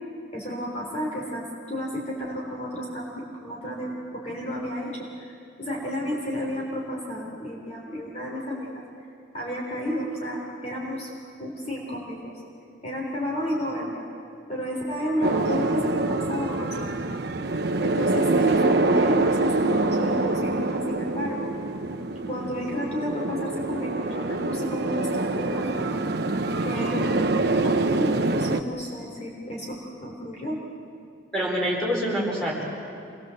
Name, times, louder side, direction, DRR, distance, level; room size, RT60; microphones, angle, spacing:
voice 1, 0.3-5.3 5.6-8.8 9.3-11.1 11.4-12.4 12.8-14.1 14.5-17.1 17.8-21.5 22.3-26.1 26.6-30.6, equal, 35° left, -2 dB, 3.8 m, -32 dB
sound 1, 15.2-28.6, right 2 dB, 55° right, 1.0 m, -25 dB
voice 2, 31.3-32.6, equal, 5° left, -4 dB, 5.0 m, -26 dB
27.0 x 21.5 x 7.8 m, 2.5 s
head